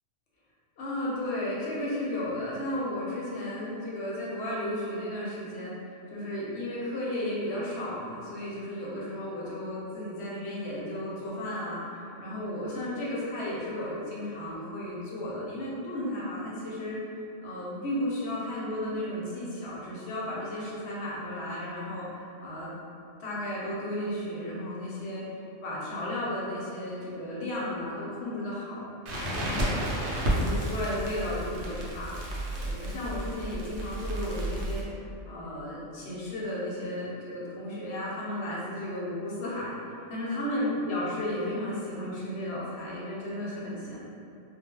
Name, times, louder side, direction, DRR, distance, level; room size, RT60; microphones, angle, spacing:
voice 1, 0.8-22.7 23.2-25.2 25.6-29.7 30.3-32.1 32.6-34.8 35.2-39.7 40.1-44.0, left 1 dB, 65° left, -7 dB, 0.9 m, -34 dB
Crackle, 29.1-34.8, right 1 dB, 70° right, 0.8 m, -31 dB
2.3 x 2.2 x 2.9 m, 2.6 s
omnidirectional pair, 1.3 m